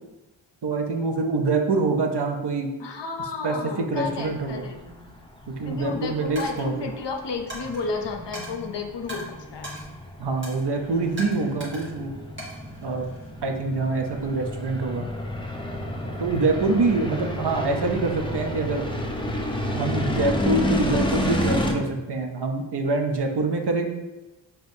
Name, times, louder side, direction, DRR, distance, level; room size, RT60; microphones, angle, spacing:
voice 1, 0.6-2.7 3.4-4.6 5.5-6.9 10.2-12.1 12.8-13.1 13.4-15.1 16.2-18.9 19.7-23.9, right 3 dB, 60° right, 3 dB, 0.7 m, -25 dB
voice 2, 2.8-4.8 5.6-9.2 9.5-9.7, left 4 dB, 65° left, 4 dB, 0.6 m, -32 dB
sound 1, 3.9-21.7, left 1 dB, 10° left, 0.6 m, -31 dB
Coin (dropping), 6.4-6.7 7.5-7.8 8.3-8.5 9.1-9.2 9.6-9.9 10.4-10.7 11.2-11.9 12.4-13.3, equal, 25° right, 1.4 m, -38 dB
5.1 x 3.0 x 2.7 m, 1.0 s
wide cardioid pair, 55°, 45 cm